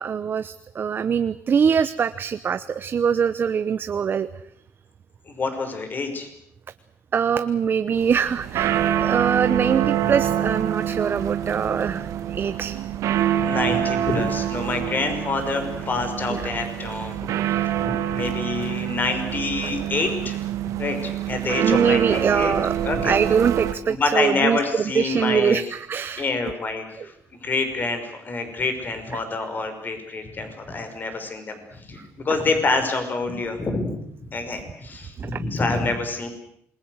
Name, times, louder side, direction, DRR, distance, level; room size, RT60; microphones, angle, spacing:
voice 1, 0.0-4.3 7.1-12.8 16.3-16.4 21.6-22.7 23.0-24.6 24.9-26.2 27.0-27.1 35.2-35.4, right 7 dB, 40° right, 12 dB, 0.9 m, -23 dB
voice 2, 5.3-6.3 9.8-9.9 10.2-10.3 13.4-17.3 17.7-20.4 20.8-22.5 22.8-23.2 23.9-25.6 26.2-27.1 27.4-33.9 34.3-36.3, left 3 dB, 35° left, 7 dB, 5.8 m, -27 dB
sound 1, 8.0-23.7, right 10 dB, 80° right, 2.1 m, -26 dB
27.5 x 22.0 x 8.0 m, 0.72 s
cardioid pair, 120°, 5 cm